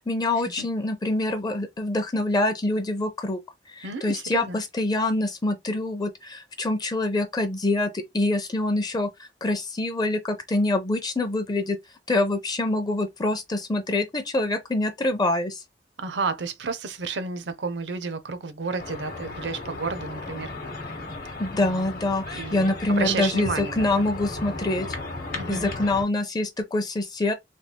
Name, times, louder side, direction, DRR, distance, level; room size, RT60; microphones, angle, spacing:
voice 1, 0.0-3.4 3.8-9.1 9.4-11.8 12.1-15.6 21.4-24.9 25.5-27.3, left 2 dB, 25° left, 0.5 m, -25 dB
voice 2, 3.8-4.6 16.0-20.5 21.6-21.9 22.3-23.9 25.3-25.7, right 4 dB, 75° right, 0.6 m, -31 dB
sound 1, 18.8-26.0, left 2 dB, 55° left, 0.9 m, -35 dB
3.3 x 2.3 x 2.9 m
head